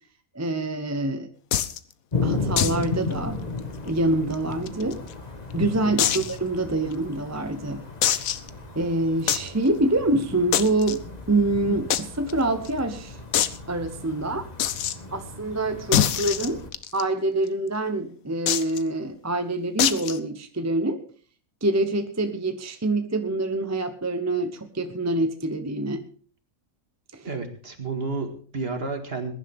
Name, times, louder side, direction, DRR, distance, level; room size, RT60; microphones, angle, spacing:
voice 1, 0.3-1.3 2.2-3.5 3.8-5.0 5.5-7.8 8.8-13.2 13.7-14.5 15.1-16.7 16.9-21.0 21.6-26.0 27.1-27.3, right 2 dB, 15° right, 8 dB, 0.8 m, -26 dB
sound 1, 1.5-1.8 2.6-2.8 3.1-3.2 3.6-3.7 4.3-5.1 6.0-6.4 6.9-7.0 8.0-8.5 9.3-9.5 10.5-11.0 11.9-12.0 12.3-12.4 12.7-12.8 13.3-13.6 14.6-15.0 15.9-17.0 18.5-18.8 19.8-20.2, left 10 dB, 80° left, 1.2 m, -23 dB
sound 2, 2.1-16.7, left 3 dB, 30° left, 1.5 m, -35 dB
voice 2, 5.8-6.2 27.2-29.3, right 4 dB, 45° right, 5 dB, 2.2 m, -31 dB
21.0 x 11.0 x 3.6 m, 0.41 s
omnidirectional pair, 1.4 m